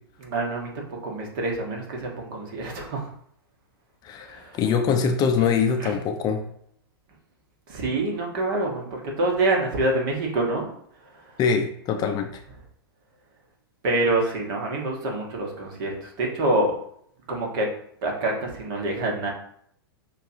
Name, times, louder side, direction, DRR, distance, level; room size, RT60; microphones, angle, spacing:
voice 1, 0.2-3.1 4.3-4.6 5.8-6.0 7.7-10.7 13.8-16.8 17.3-17.7 18.0-19.3, right 2 dB, 50° right, 0 dB, 1.4 m, -26 dB
voice 2, 4.0-6.4 11.4-12.4, left 6 dB, 30° left, 5 dB, 0.5 m, -23 dB
6.5 x 2.5 x 2.8 m, 0.66 s
hypercardioid pair, 110°, 13 cm